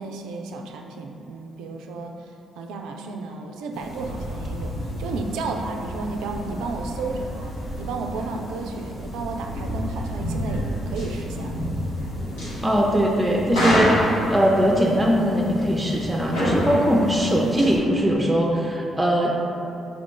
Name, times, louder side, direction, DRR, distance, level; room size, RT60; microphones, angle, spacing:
voice 1, 0.0-2.1 2.6-7.5 7.8-11.8, right 3 dB, 70° right, 3 dB, 0.3 m, -33 dB
sound 1, 3.7-17.8, equal, 80° left, 1.1 m, -29 dB
voice 2, 12.6-19.3, equal, 15° right, -2 dB, 0.5 m, -21 dB
4.8 x 2.4 x 3.7 m, 2.8 s
hypercardioid pair, 40°, 0 cm